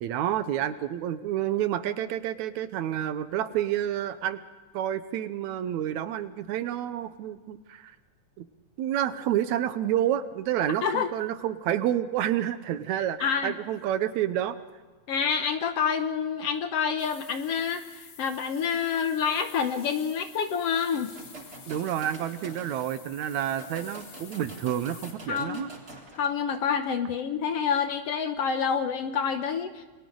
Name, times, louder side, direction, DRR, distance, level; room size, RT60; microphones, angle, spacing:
voice 1, 0.0-4.4 4.7-7.9 8.4-8.5 8.8-14.6 21.7-25.7, right 11 dB, 75° right, 12 dB, 2.2 m, -29 dB
voice 2, 10.8-11.1 13.2-13.5 15.1-21.1 25.3-25.7 26.1-29.8, left 7 dB, 65° left, 8 dB, 1.7 m, -28 dB
stream cleaner, 17.0-25.1, left 6 dB, 80° left, 3.7 m, -50 dB
sound 1, 20.8-26.3, right 2 dB, 30° right, 4.2 m, -47 dB
29.5 x 23.0 x 3.9 m, 1.3 s
omnidirectional pair, 3.4 m